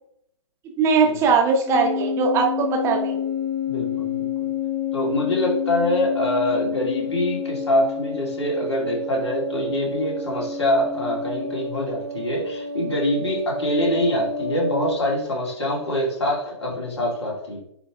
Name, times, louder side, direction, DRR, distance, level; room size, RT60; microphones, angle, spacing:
voice 1, 0.8-3.2, right 5 dB, 20° right, 1 dB, 1.3 m, -20 dB
sound 1, 1.7-14.9, left 5 dB, 15° left, 1.2 m, -29 dB
voice 2, 3.7-4.5 4.9-17.6, left 1 dB, 60° left, -2 dB, 2.8 m, -24 dB
9.7 x 3.3 x 3.7 m, 0.74 s
figure-of-eight pair, 120°, 16 cm